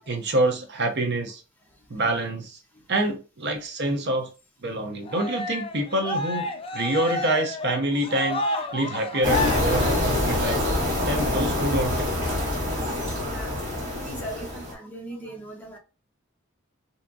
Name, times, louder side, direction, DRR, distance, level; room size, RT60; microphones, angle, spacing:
voice 1, 0.0-1.4 1.9-2.6 2.9-4.3 4.6-6.5 6.7-10.7 11.1-12.1, right 1 dB, 55° right, 0.7 m, -26 dB
Cheering, 5.1-10.5, left 2 dB, 25° left, 0.4 m, -31 dB
sound 1, 9.2-14.7, left 1 dB, 35° right, 1.5 m, -25 dB
voice 2, 11.0-11.3 12.3-15.8, right 1 dB, 10° left, 0.9 m, -41 dB
3.4 x 2.8 x 2.6 m
head